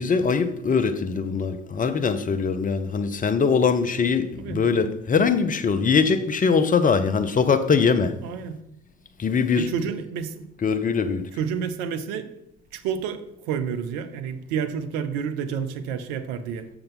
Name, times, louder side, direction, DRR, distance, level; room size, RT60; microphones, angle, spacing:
voice 1, 0.0-8.1 9.2-9.7 10.6-11.3, left 5 dB, 25° left, 0.7 m, -22 dB
voice 2, 8.2-8.6 9.6-10.5 11.4-12.4 12.7-16.7, right 7 dB, 65° right, 0.7 m, -29 dB
6.7 x 5.9 x 5.5 m
figure-of-eight pair, 50°, 32 cm